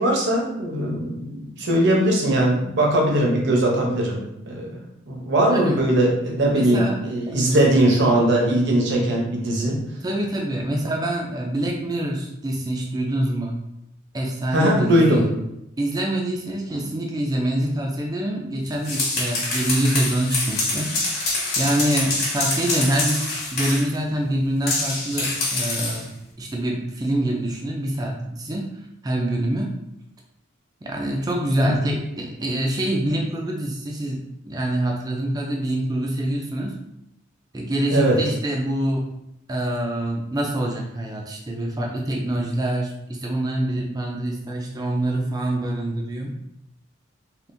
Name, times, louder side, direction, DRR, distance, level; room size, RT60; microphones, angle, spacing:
voice 1, 0.0-4.8 5.1-9.8 14.5-15.2 31.6-31.9 37.9-38.2, right 1 dB, 55° right, -1 dB, 0.7 m, -20 dB
voice 2, 5.5-5.8 6.5-7.0 7.3-7.4 10.0-13.6 14.1-15.3 15.8-21.3 21.6-26.1 26.4-28.7 29.0-29.7 30.8-36.8 37.5-39.1 39.5-46.3, right 1 dB, 20° right, 0 dB, 0.3 m, -25 dB
sound 1, 18.7-23.9 24.7-26.0, left 2 dB, 50° left, 1.1 m, -25 dB
3.5 x 2.4 x 2.6 m, 0.82 s
head